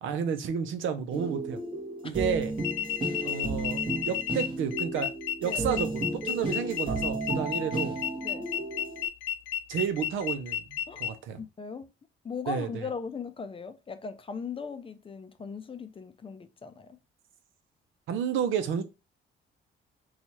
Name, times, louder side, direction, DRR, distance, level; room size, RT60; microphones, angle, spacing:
voice 1, 0.0-1.6 2.0-2.5 3.2-5.1 5.4-8.0 9.7-11.4 12.5-12.8 18.1-18.8, right 7 dB, 80° right, 0.6 m, -31 dB
sound 1, 1.1-9.1, right 2 dB, 25° right, 1.1 m, -34 dB
sound 2, 2.6-11.1, left 10 dB, 90° left, 0.5 m, -32 dB
voice 2, 11.4-11.9 12.2-17.0, left 5 dB, 25° left, 0.4 m, -38 dB
2.9 x 2.4 x 4.2 m
cardioid pair, 90°, 20 cm